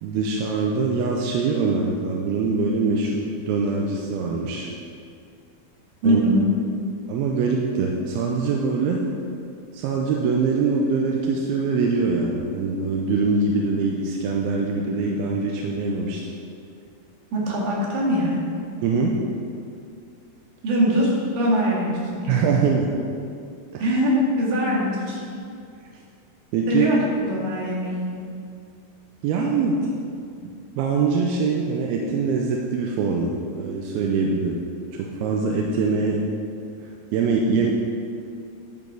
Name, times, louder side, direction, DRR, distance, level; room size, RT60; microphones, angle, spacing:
voice 1, 0.0-4.7 6.0-6.2 7.1-9.1 9.7-16.2 18.8-19.2 22.3-22.9 23.7-23.8 26.5-26.9 29.2-29.9 30.4-34.6 35.0-36.2 37.1-37.7, right 4 dB, 80° right, 0 dB, 2.5 m, -23 dB
voice 2, 6.0-6.4 17.3-18.4 20.6-22.5 23.8-25.2 26.7-28.2, equal, 60° right, -4 dB, 3.4 m, -22 dB
10.0 x 8.1 x 4.7 m, 2.4 s
omnidirectional pair, 4.9 m